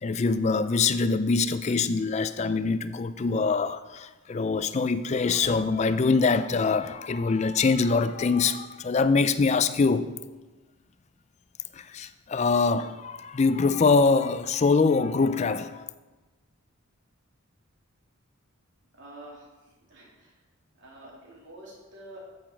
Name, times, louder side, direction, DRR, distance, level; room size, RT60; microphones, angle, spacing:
voice 1, 0.0-10.1 11.7-15.9, left 4 dB, 30° left, 13 dB, 0.3 m, -24 dB
voice 2, 19.0-19.4 19.9-20.3 20.8-22.2, right 1 dB, 55° right, -4 dB, 3.0 m, -47 dB
8.7 x 8.1 x 4.5 m, 1.2 s
head